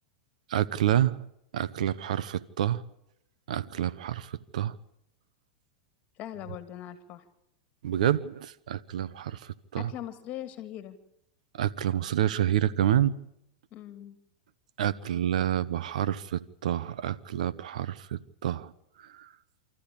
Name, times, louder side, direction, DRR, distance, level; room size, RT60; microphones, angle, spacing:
voice 1, 0.5-1.2 1.5-2.8 3.5-4.7 7.8-9.9 11.5-13.2 14.8-18.7 19.1-19.3, right 11 dB, 80° right, 0.9 m, -28 dB
voice 2, 6.2-7.2 9.8-11.0 13.7-14.2, left 12 dB, 40° left, 2.5 m, -40 dB
26.5 x 14.0 x 8.7 m
supercardioid pair, 125°, 4 cm